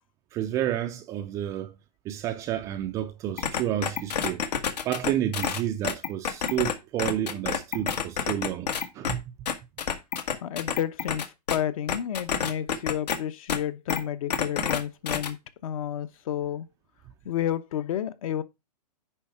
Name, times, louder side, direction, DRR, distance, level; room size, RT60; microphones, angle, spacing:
voice 1, 0.3-1.7 2.1-4.4 4.9-8.7 8.9-9.3, right 12 dB, 15° right, 0.3 m, -30 dB
sound 1, 3.4-6.7 7.0-9.1 9.5-11.6 11.9-13.2 13.5-13.6 13.9-14.0 14.3-14.8 15.1-15.3, left 7 dB, 75° left, 1.7 m, -28 dB
voice 2, 10.4-15.4 15.6-16.7 17.2-18.4, left 10 dB, 55° left, 1.0 m, -31 dB
10.5 x 3.6 x 5.6 m
hypercardioid pair, 150°, 21 cm